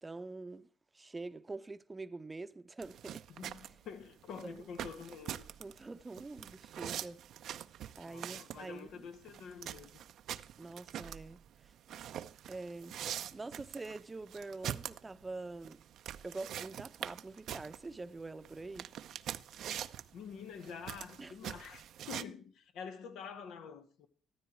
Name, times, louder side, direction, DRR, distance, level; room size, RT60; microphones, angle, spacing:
voice 1, 0.0-3.2 4.4-4.6 5.6-7.2 7.9-9.0 10.6-11.7 12.5-15.8 16.2-18.9 21.2-21.3, right 3 dB, 20° right, 0.8 m, -45 dB
sound 1, 2.8-22.2, right 10 dB, 70° right, 0.7 m, -44 dB
voice 2, 3.3-5.4 8.0-10.0 19.6-19.7 20.1-24.1, left 6 dB, 75° left, 1.9 m, -47 dB
14.5 x 13.0 x 4.6 m
cardioid pair, 90°, 0 cm